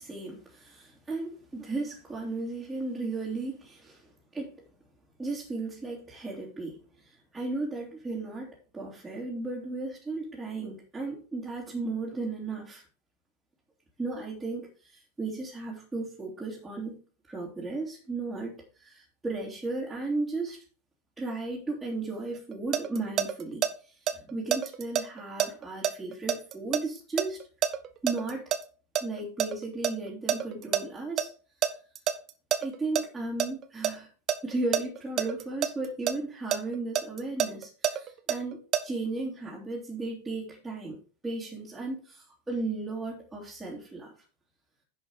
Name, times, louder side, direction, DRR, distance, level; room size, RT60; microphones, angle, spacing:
voice 1, 0.0-4.5 5.2-12.8 14.0-17.0 17.3-20.6 21.2-27.4 28.0-28.4 29.0-31.3 32.6-34.1 34.4-41.0 41.2-44.1, right 3 dB, 5° right, -7 dB, 3.0 m, -35 dB
sound 1, 22.3-23.7 24.1-28.6 28.9-30.8 31.2-31.3 31.6-33.0 33.4-33.9 34.3-36.1 36.5-38.8, right 10 dB, 30° right, 1.0 m, -27 dB
10.5 x 5.7 x 4.9 m, 0.38 s
figure-of-eight pair, 90°, 0 cm